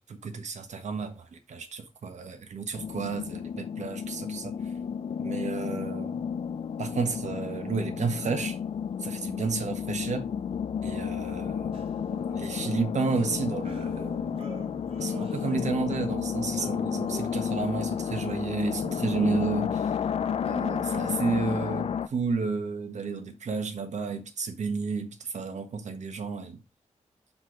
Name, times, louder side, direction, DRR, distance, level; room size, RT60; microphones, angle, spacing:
voice 1, 0.0-4.5 5.2-6.2 6.8-8.6 9.0-10.3 10.8-11.8 12.3-14.4 15.0-19.9 20.4-26.6, right 4 dB, 75° right, 1.3 m, -32 dB
sound 1, 2.7-22.1, left 7 dB, 55° left, 0.4 m, -32 dB
sound 2, 11.7-15.9 16.2-18.1 18.6-19.0, right 2 dB, 50° right, 1.4 m, -48 dB
6.2 x 4.3 x 4.9 m
wide cardioid pair, 110°, 12 cm